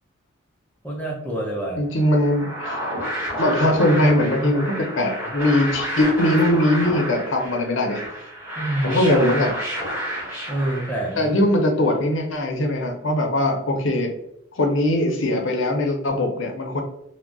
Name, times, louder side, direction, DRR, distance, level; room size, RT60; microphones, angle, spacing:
voice 1, 0.8-1.8 8.6-9.2 10.5-11.3, right 1 dB, 10° left, -2 dB, 0.6 m, -27 dB
voice 2, 1.7-2.8 3.4-8.0 8.8-9.5 11.2-14.1 14.6-16.8, left 1 dB, 65° left, 2 dB, 0.6 m, -20 dB
sound 1, 2.1-11.4, equal, 10° right, 1.1 m, -30 dB
2.3 x 2.1 x 3.7 m, 0.75 s
head